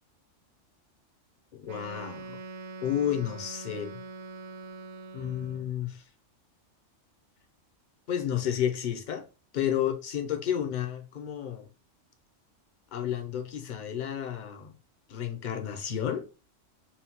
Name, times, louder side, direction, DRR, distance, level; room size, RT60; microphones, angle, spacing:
voice 1, 1.5-2.4 2.8-3.9 5.1-6.0 8.1-9.2 9.5-11.7 12.9-14.7 15.1-16.2, left 10 dB, 50° left, 0.7 m, -31 dB
Wind instrument woodwind instrument, 1.6-5.7, right 3 dB, 75° right, 0.9 m, -43 dB
5.7 x 2.3 x 2.8 m
omnidirectional pair, 1.3 m